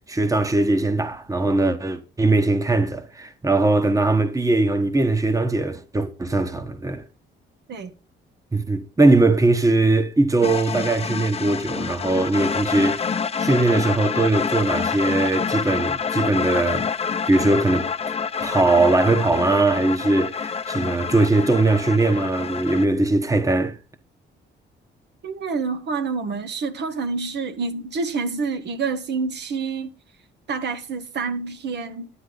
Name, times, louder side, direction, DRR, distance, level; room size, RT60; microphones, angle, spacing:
voice 1, 0.1-7.0 8.5-13.0 13.4-16.9 17.3-17.9 18.4-23.8, right 2 dB, 15° right, 1.2 m, -20 dB
sound 1, 10.4-22.9, left 6 dB, 30° left, 0.8 m, -27 dB
voice 2, 25.2-29.9 30.5-32.1, right 4 dB, 60° right, 1.2 m, -27 dB
10.0 x 9.4 x 3.9 m
cardioid pair, 90°, 20 cm